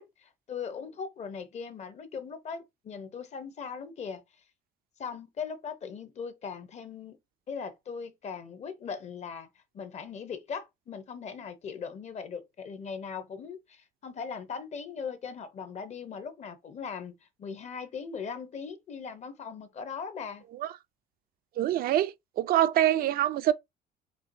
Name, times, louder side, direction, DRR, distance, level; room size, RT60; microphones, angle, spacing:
voice 1, 0.0-4.2 5.0-7.2 7.5-9.5 9.7-17.1 17.4-20.4, left 6 dB, 40° left, 0.8 m, -39 dB
voice 2, 21.6-23.5, right 12 dB, 60° right, 0.4 m, -25 dB
4.3 x 2.9 x 2.6 m
cardioid pair, 110°, 17 cm